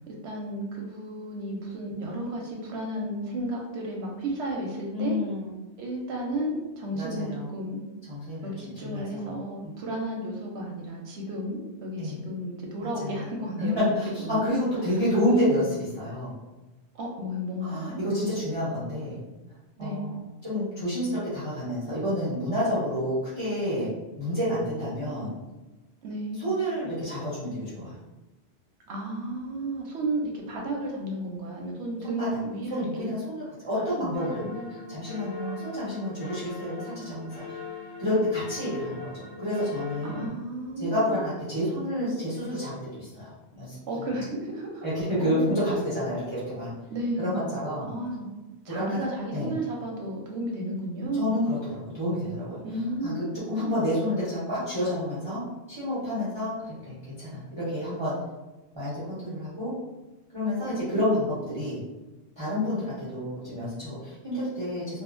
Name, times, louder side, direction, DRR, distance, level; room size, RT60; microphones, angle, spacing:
voice 1, 0.1-5.2 5.8-7.8 8.4-13.8 14.2-14.6 17.0-18.0 19.8-20.1 26.0-26.5 28.9-33.1 33.8-34.3 34.5-34.8 40.0-41.2 43.9-44.9 45.3-45.5 46.9-47.4 47.8-48.3 48.6-51.4 52.6-53.7 60.6-61.1, right 1 dB, 85° right, -1 dB, 0.9 m, -33 dB
voice 2, 4.9-5.5 6.9-7.5 8.1-8.5 8.8-9.3 9.6-9.7 12.0-12.2 12.8-13.2 13.6-16.3 17.7-19.2 19.8-20.2 20.4-23.9 24.2-25.3 26.4-28.0 32.2-32.3 32.7-34.5 34.9-37.6 38.0-40.3 40.8-44.1 44.8-46.7 47.2-47.9 48.7-49.0 49.3-49.5 51.1-52.6 53.0-58.2 58.7-59.8 60.3-61.8 62.4-65.0, left 1 dB, 25° right, -11 dB, 0.8 m, -29 dB
sound 1, 34.1-40.3, left 6 dB, 80° left, 0.9 m, -41 dB
2.8 x 2.4 x 2.4 m, 1.1 s
omnidirectional pair, 1.1 m